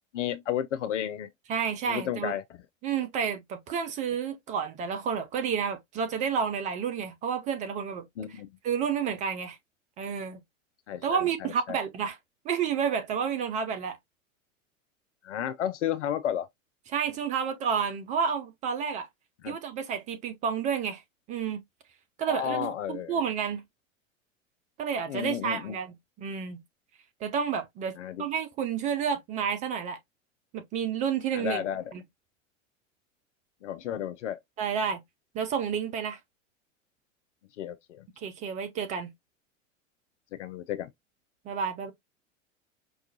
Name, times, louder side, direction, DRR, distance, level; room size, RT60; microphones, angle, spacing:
voice 1, 0.1-1.3 1.8-2.4 8.2-8.5 10.9-11.8 15.2-16.5 19.4-19.6 22.3-23.2 25.1-25.8 28.0-28.2 31.3-31.9 33.6-34.4 37.6-38.1 40.4-40.9, left 10 dB, 65° left, 0.5 m, -32 dB
voice 2, 1.5-2.3 2.8-8.0 8.6-9.6 10.0-10.4 11.0-12.2 12.4-14.0 16.9-19.1 19.5-21.0 21.3-21.6 22.2-23.6 24.8-26.6 27.2-30.0 30.5-31.6 31.9-32.0 34.6-35.0 35.3-36.2 38.2-39.1 41.5-41.9, right 7 dB, 20° right, 0.4 m, -30 dB
5.3 x 2.3 x 2.7 m
figure-of-eight pair, 90°, 39 cm